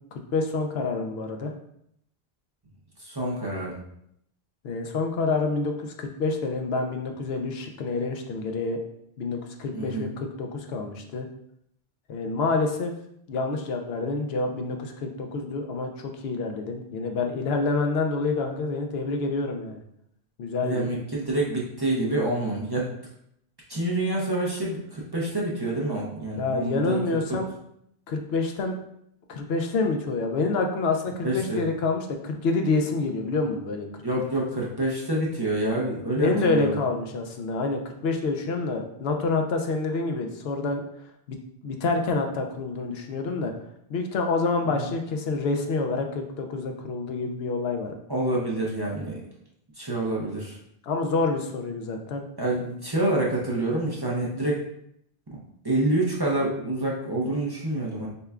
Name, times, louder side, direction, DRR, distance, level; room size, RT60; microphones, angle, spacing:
voice 1, 0.1-1.5 4.6-8.8 9.2-11.3 12.1-12.9 13.3-19.8 20.4-21.0 26.4-27.5 28.1-28.8 29.3-34.0 36.1-40.8 41.3-43.5 43.9-48.0 50.8-52.2, left 3 dB, 80° left, 4 dB, 0.8 m, -27 dB
voice 2, 3.0-3.8 9.7-10.1 20.6-22.9 23.7-27.0 27.3-27.4 31.2-31.6 34.0-36.8 44.7-44.9 48.1-49.2 49.8-50.6 52.4-54.7 55.3-55.4 55.6-58.1, right 2 dB, 25° right, -4 dB, 0.6 m, -27 dB
6.7 x 2.2 x 2.4 m, 0.73 s
omnidirectional pair, 1.0 m